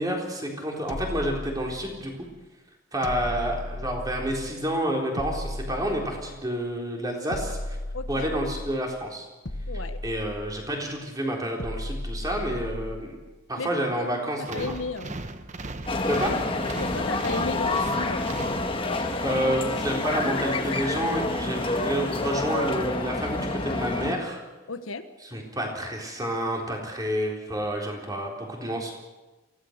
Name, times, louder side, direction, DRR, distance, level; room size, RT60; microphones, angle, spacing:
voice 1, 0.0-2.1 2.9-7.8 8.1-9.3 10.0-13.2 13.5-14.7 16.0-16.3 18.9-24.4 25.2-28.9, equal, 20° right, 0 dB, 3.8 m, -29 dB
sound 1, 0.9-2.2 3.0-4.7 5.2-6.6 7.3-8.9 9.5-10.9 11.6-13.2, left 1 dB, 55° left, 1.3 m, -36 dB
voice 2, 7.9-8.3 9.7-10.0 13.6-15.1 16.8-18.3 24.7-25.0, left 3 dB, 75° left, 10 dB, 1.4 m, -34 dB
sound 2, 14.4-19.2, right 2 dB, 35° right, 0.9 m, -37 dB
sound 3, 15.9-24.1, left 2 dB, 25° left, 1.5 m, -28 dB
24.0 x 16.5 x 6.6 m, 1.1 s
head